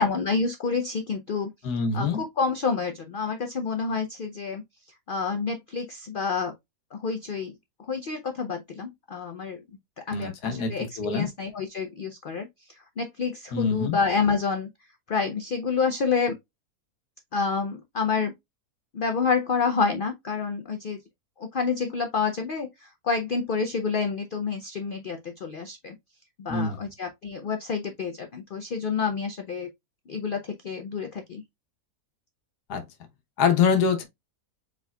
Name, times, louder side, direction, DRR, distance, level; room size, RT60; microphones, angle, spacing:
voice 1, 0.0-1.5 1.9-4.6 5.1-6.5 6.9-7.5 7.9-9.6 10.1-12.5 13.0-14.7 15.1-16.3 17.3-18.3 18.9-21.0 21.4-25.9 26.4-29.7 30.1-31.4, left 5 dB, 65° left, 0.5 m, -28 dB
voice 2, 1.6-2.2 10.1-11.3 13.5-14.0 26.5-26.9 32.7-32.8 33.4-34.0, left 5 dB, 90° left, 1.4 m, -25 dB
4.9 x 3.8 x 2.2 m
omnidirectional pair, 1.6 m